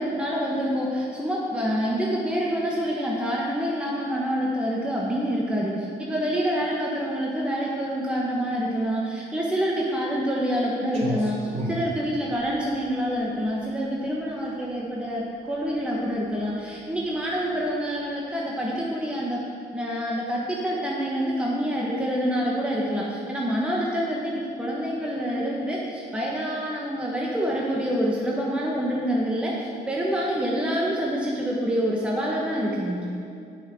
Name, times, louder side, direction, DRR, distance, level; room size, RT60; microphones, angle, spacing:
voice 1, 0.0-19.4 19.7-33.0, equal, 5° right, -4 dB, 1.1 m, -27 dB
Clock, 10.9-18.3, right 1 dB, 40° right, 2.4 m, -37 dB
9.7 x 5.6 x 6.3 m, 2.5 s
cardioid pair, 110°, 17 cm